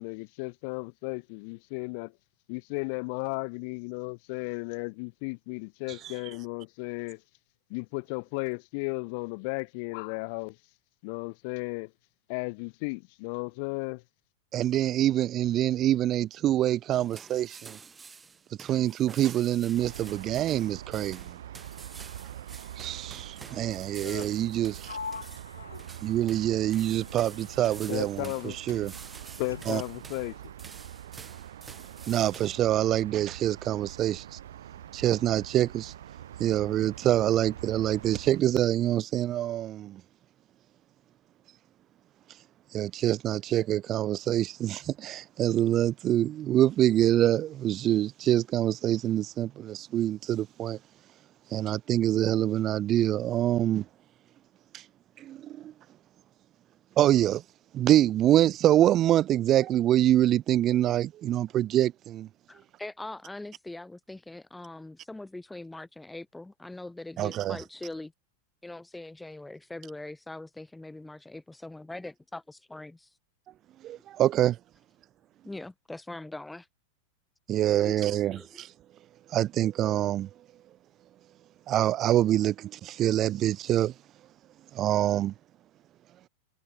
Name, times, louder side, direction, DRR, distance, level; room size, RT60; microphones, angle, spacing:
voice 1, 0.0-2.2 2.5-7.2 7.7-10.6 11.0-11.9 12.3-14.0 23.9-24.3 27.9-28.6 29.4-30.5, left 33 dB, 45° left, 2.6 m, -35 dB
voice 2, 14.5-17.8 18.6-21.2 22.8-25.0 26.0-28.2 28.7-28.9 29.7-29.8 32.1-34.4 34.9-35.9 36.4-40.0 42.7-50.8 51.5-53.8 54.7-54.8 55.2-55.7 57.0-57.4 57.7-62.3 67.2-67.6 73.8-74.6 77.5-78.7 79.3-80.3 81.7-83.9 84.7-85.3, right 12 dB, 30° right, 0.4 m, -25 dB
sound 1, 16.9-32.6, right 5 dB, 15° right, 4.3 m, -49 dB
sound 2, 19.7-38.4, right 11 dB, 60° right, 1.6 m, -44 dB
Sliding door, 24.8-28.4 28.7-30.0, left 5 dB, 75° left, 3.9 m, -44 dB
voice 3, 62.5-68.1 68.6-73.2 75.4-76.7 77.8-78.5, left 2 dB, 5° left, 0.8 m, -42 dB
figure-of-eight pair, 90°, 0 cm